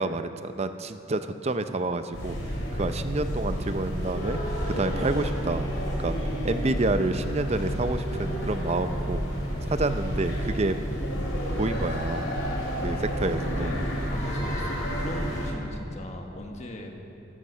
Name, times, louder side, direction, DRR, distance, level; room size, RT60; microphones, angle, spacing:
voice 1, 0.0-2.4 2.7-4.4 4.6-5.6 6.0-6.1 6.4-9.2 9.6-10.8 11.6-12.3 12.8-13.7, right 2 dB, 35° right, 10 dB, 0.5 m, -29 dB
sound 1, 2.1-15.5, equal, 85° left, 3.2 m, -30 dB
voice 2, 13.2-16.9, left 1 dB, 35° left, 3 dB, 1.3 m, -38 dB
14.5 x 13.0 x 5.6 m, 3.0 s
head